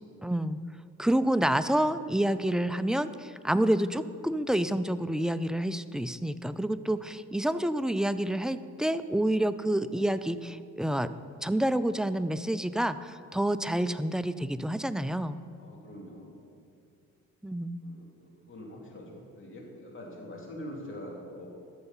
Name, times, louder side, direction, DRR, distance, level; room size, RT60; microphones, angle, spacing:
voice 1, 0.2-0.6 1.0-11.1 11.4-15.4 17.4-17.8, right 1 dB, ahead, 12 dB, 0.3 m, -28 dB
voice 2, 15.6-16.3 17.8-21.5, left 1 dB, 40° left, -1 dB, 2.8 m, -44 dB
12.5 x 6.7 x 5.6 m, 2.4 s
cardioid pair, 90°, 30 cm